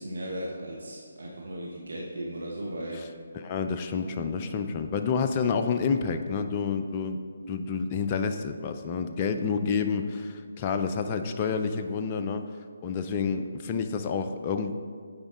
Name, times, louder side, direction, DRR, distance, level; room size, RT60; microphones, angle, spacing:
voice 1, 0.0-3.0, right 1 dB, 65° right, -2 dB, 1.0 m, -36 dB
voice 2, 3.4-7.2 7.5-12.5 12.8-14.7, left 5 dB, 25° left, 6 dB, 0.4 m, -29 dB
8.7 x 5.0 x 3.7 m, 2.1 s
figure-of-eight pair, 145°, 0 cm